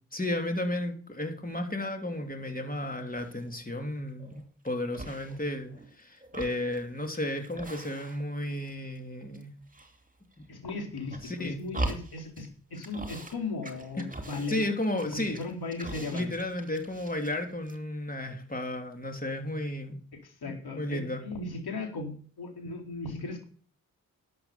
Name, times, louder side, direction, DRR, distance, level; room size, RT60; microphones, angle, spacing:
voice 1, 0.1-9.5 11.2-11.6 14.5-15.4 16.1-20.0 20.5-21.2, left 1 dB, 25° left, 4 dB, 3.2 m, -33 dB
sound 1, 3.2-3.6 4.1-4.7 4.9-5.9 6.2-8.4 8.7-9.4 9.7-10.5 11.0-12.5 12.7-13.4 13.6-17.4 17.6-17.8, right 2 dB, 20° right, 2.5 m, -41 dB
voice 2, 10.5-14.6 15.1-16.3 20.2-23.4, left 3 dB, 80° left, 2 dB, 4.4 m, -37 dB
11.5 x 7.7 x 7.1 m, 0.43 s
cardioid pair, 60°, 37 cm